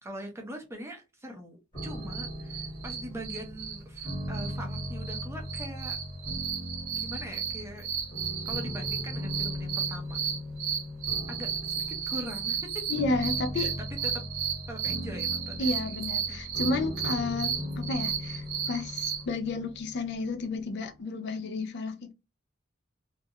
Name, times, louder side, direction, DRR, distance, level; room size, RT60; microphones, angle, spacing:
voice 1, 0.0-6.0 6.9-7.9 8.4-10.2 11.3-13.0 13.6-13.7 14.0-14.2 14.7-15.9, equal, 15° right, 0.6 m, -42 dB
sound 1, 1.7-20.7, left 1 dB, 25° left, 1.3 m, -39 dB
sound 2, 1.8-19.2, right 8 dB, 80° right, 0.6 m, -34 dB
voice 2, 12.9-13.8 15.6-22.1, left 3 dB, 55° left, 0.4 m, -32 dB
2.4 x 2.1 x 2.7 m
head